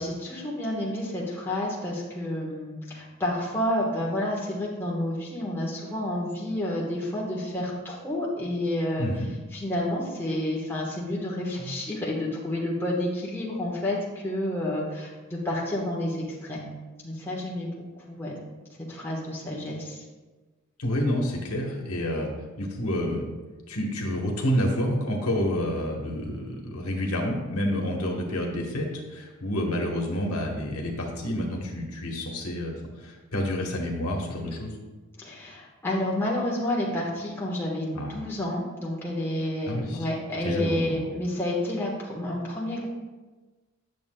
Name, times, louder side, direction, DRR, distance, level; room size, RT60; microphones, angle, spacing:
voice 1, 0.0-9.1 9.5-16.7 17.0-18.4 18.9-20.0 35.2-42.9, left 1 dB, 10° left, -5 dB, 1.2 m, -30 dB
voice 2, 20.8-22.3 22.6-23.2 23.7-34.7 37.9-38.1 39.7-40.0 40.4-41.0, left 1 dB, 80° left, 0 dB, 1.2 m, -29 dB
9.3 x 6.8 x 2.2 m, 1.2 s
head